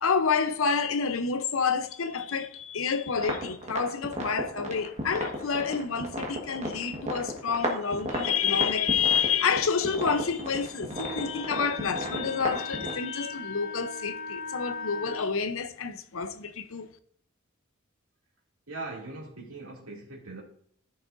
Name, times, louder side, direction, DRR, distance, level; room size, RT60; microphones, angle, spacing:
voice 1, 0.0-16.9, left 6 dB, 70° left, 0.7 m, -28 dB
sound 1, 3.1-12.9, equal, 30° right, 1.5 m, -35 dB
Wind instrument woodwind instrument, 10.9-15.2, left 4 dB, 35° left, 1.4 m, -39 dB
voice 2, 18.7-20.4, right 3 dB, 80° right, 2.5 m, -40 dB
14.5 x 6.1 x 2.6 m
head